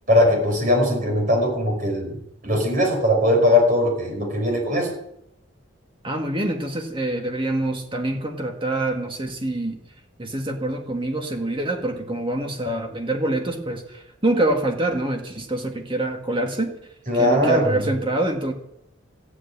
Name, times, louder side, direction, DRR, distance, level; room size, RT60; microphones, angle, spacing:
voice 1, 0.1-2.2 2.4-4.9 17.1-17.8, left 1 dB, 40° right, 0 dB, 5.6 m, -20 dB
voice 2, 6.0-9.8 10.2-16.8 17.1-18.5, right 1 dB, 25° right, 3 dB, 2.0 m, -25 dB
14.5 x 8.5 x 8.9 m, 0.78 s
head